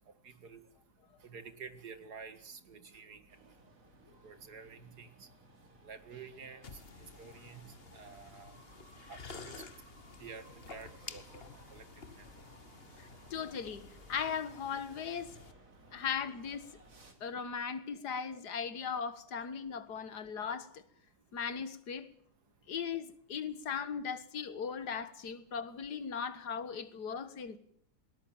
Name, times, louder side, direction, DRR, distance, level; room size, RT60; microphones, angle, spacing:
voice 1, 0.2-0.6 1.2-3.2 4.2-5.3 5.8-6.8 7.2-7.6 7.9-8.6 9.1-9.6 10.2-11.8 12.2-12.3, right 5 dB, 80° right, 2.5 m, -50 dB
sound 1, 3.3-17.1, right 2 dB, 55° right, 3.5 m, -59 dB
sound 2, 6.6-15.5, left 5 dB, 40° left, 1.4 m, -52 dB
voice 2, 13.0-15.4 15.9-16.8 17.2-20.8 21.3-22.1 22.7-27.6, left 6 dB, 85° left, 2.0 m, -38 dB
20.0 x 19.0 x 8.8 m
omnidirectional pair, 1.7 m